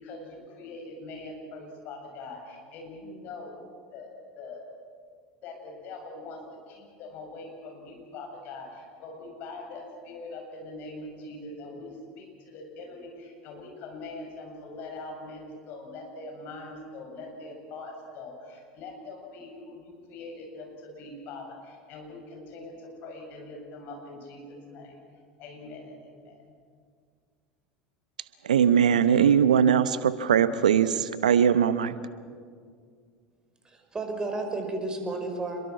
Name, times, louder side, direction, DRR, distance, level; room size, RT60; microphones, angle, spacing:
voice 1, 0.0-3.6 3.9-4.1 4.4-4.6 5.4-6.4 6.7-25.0 25.4-26.5, left 2 dB, 50° left, 1 dB, 7.2 m, -42 dB
voice 2, 28.4-32.0, right 8 dB, 75° right, 14 dB, 1.0 m, -21 dB
voice 3, 33.6-35.7, right 2 dB, 20° right, 4 dB, 5.4 m, -32 dB
28.5 x 22.5 x 6.0 m, 2.1 s
figure-of-eight pair, 75°, 4 cm